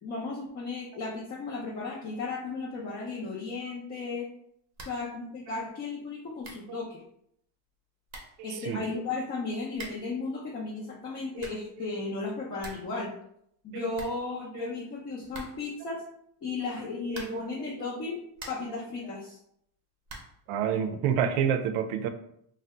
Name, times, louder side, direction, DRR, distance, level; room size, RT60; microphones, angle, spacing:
voice 1, 0.0-4.3 4.8-7.0 8.4-13.1 13.6-16.0 16.4-18.2 18.5-19.4, left 3 dB, 30° left, -4 dB, 0.5 m, -35 dB
sound 1, 4.7-5.1 5.4-5.5 6.1-6.2 6.4-6.7 7.7-7.8 8.1-8.4 9.7-10.2 11.1-11.7 12.1-12.2 12.4-13.0 13.2-13.3 13.6-13.7 13.9-14.7 15.3-15.8 17.1-17.6 18.0-18.8 20.0-20.4, right 2 dB, 35° right, 0.6 m, -45 dB
voice 2, 8.5-8.9 13.7-14.2 20.5-22.1, right 8 dB, 80° right, 8 dB, 0.5 m, -28 dB
2.7 x 2.1 x 3.4 m, 0.72 s
cardioid pair, 150°, 47 cm